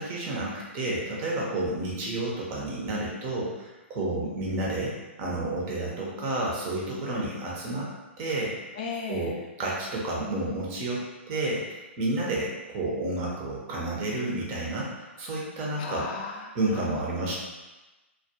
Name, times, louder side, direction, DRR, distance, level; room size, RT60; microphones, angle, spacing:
voice 1, 0.0-7.9 8.2-8.6 9.1-16.1 16.5-17.3, right 2 dB, 30° right, -4 dB, 0.7 m, -30 dB
voice 2, 8.8-9.3 15.8-16.5 17.2-17.3, left 4 dB, 45° left, 1 dB, 0.3 m, -35 dB
2.3 x 2.2 x 2.8 m, 1.1 s
hypercardioid pair, 125°, 7 cm